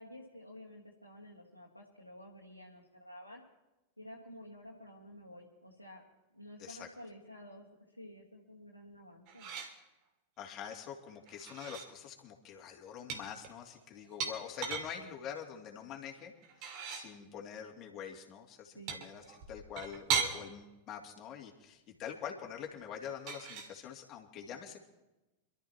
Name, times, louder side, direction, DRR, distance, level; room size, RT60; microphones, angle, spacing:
voice 1, 0.0-3.4 4.0-6.0 6.3-7.7 7.9-9.5 18.7-19.0, left 1 dB, 90° left, -4 dB, 1.8 m, -51 dB
sound 1, 9.3-9.8 11.3-11.9 13.1-14.9 16.4-17.1 18.9-20.4 23.0-23.7, right 6 dB, 45° right, 2.5 m, -37 dB
voice 2, 10.4-24.8, left 8 dB, 35° left, 1 dB, 2.6 m, -45 dB
27.0 x 13.0 x 3.0 m, 1.0 s
figure-of-eight pair, 90°, 0 cm